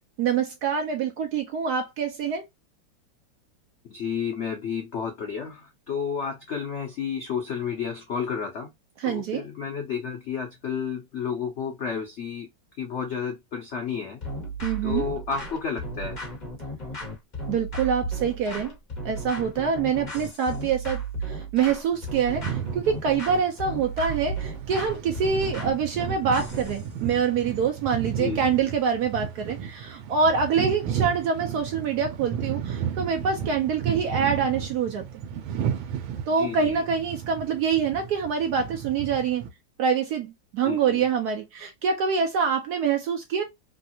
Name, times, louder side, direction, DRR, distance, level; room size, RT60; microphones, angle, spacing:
voice 1, 0.2-2.4 9.0-9.5 14.6-15.0 17.5-18.7 19.0-35.0 36.3-39.4 39.8-43.4, right 6 dB, 70° right, 0.9 m, -25 dB
voice 2, 3.8-8.7 9.0-12.5 12.7-14.2 14.8-16.2 28.2-28.4 36.4-36.8 40.6-41.0, left 6 dB, 80° left, 0.6 m, -31 dB
sound 1, 14.2-26.9, right 2 dB, 25° left, 1.2 m, -34 dB
sound 2, 21.9-39.5, right 8 dB, 85° right, 1.4 m, -33 dB
3.4 x 2.3 x 2.6 m
omnidirectional pair, 2.1 m